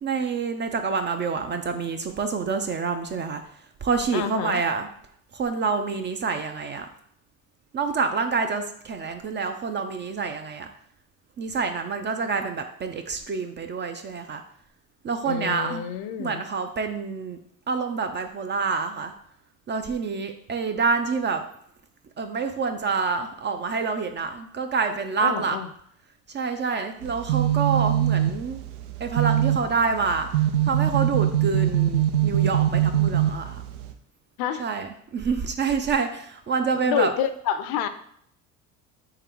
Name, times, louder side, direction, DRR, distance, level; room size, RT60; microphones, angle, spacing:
voice 1, 0.0-4.9 5.3-6.9 7.7-10.7 11.4-14.4 15.0-15.9 16.2-17.4 17.7-19.1 19.7-21.4 22.2-25.6 26.3-28.6 29.0-33.6 34.6-37.1, right 5 dB, 30° right, 7 dB, 0.4 m, -27 dB
voice 2, 4.1-4.6 15.3-16.4 25.2-25.7 34.4-34.6 36.8-37.9, left 9 dB, 60° left, 11 dB, 0.6 m, -28 dB
sound 1, 27.0-33.9, right 11 dB, 90° right, 0.6 m, -23 dB
3.9 x 3.0 x 4.4 m, 0.67 s
supercardioid pair, 90°, 42 cm